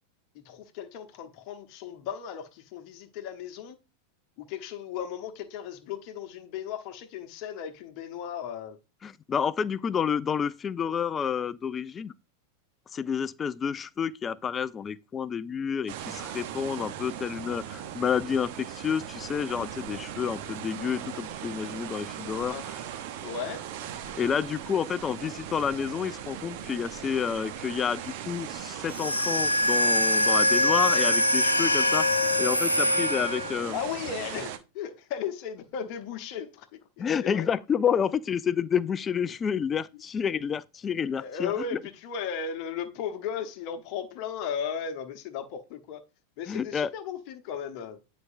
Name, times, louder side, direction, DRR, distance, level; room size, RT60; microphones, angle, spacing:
voice 1, 0.3-3.8 4.4-8.8 22.5-22.7 23.2-23.6 33.7-37.4 41.1-46.0 46.4-48.0, left 8 dB, 45° left, 1.0 m, -36 dB
voice 2, 9.0-12.1 12.9-22.6 24.2-32.1 32.4-33.8 37.0-41.5 46.5-46.9, left 7 dB, 20° left, 0.4 m, -29 dB
sound 1, 15.9-34.6, right 10 dB, 50° right, 0.8 m, -39 dB
sound 2, 28.9-33.7, left 1 dB, 85° left, 0.8 m, -24 dB
9.6 x 5.0 x 2.6 m
figure-of-eight pair, 90°, 0 cm